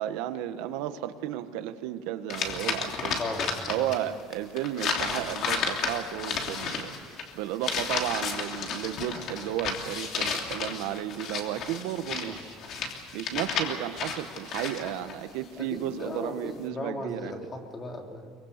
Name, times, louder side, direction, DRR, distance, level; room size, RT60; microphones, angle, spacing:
voice 1, 0.0-3.2 3.7-12.6 13.1-17.3, right 12 dB, 75° right, 9 dB, 1.5 m, -33 dB
sound 1, 2.3-4.0 4.3-15.1, left 5 dB, 40° left, 3.1 m, -32 dB
voice 2, 3.2-3.9 12.3-12.4 15.6-18.3, left 2 dB, 20° left, 3 dB, 2.9 m, -37 dB
24.0 x 23.5 x 6.7 m, 2.2 s
cardioid pair, 160°, 0 cm